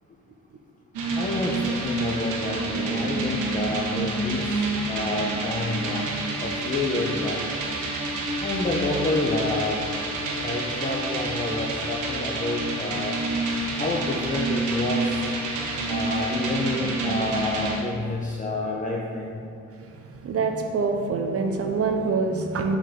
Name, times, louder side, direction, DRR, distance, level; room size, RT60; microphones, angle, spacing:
sound 1, 0.9-17.8, right 2 dB, 85° right, 1.6 m, -28 dB
voice 1, 1.1-6.1 6.4-7.4 8.4-9.8 10.4-13.2 13.8-15.2 15.9-19.4, left 2 dB, 25° left, -2 dB, 0.9 m, -29 dB
voice 2, 13.5-13.8 15.5-15.9 20.0-22.8, right 4 dB, 50° right, 4 dB, 0.8 m, -26 dB
7.3 x 4.9 x 6.6 m, 2.4 s
cardioid pair, 90°, 30 cm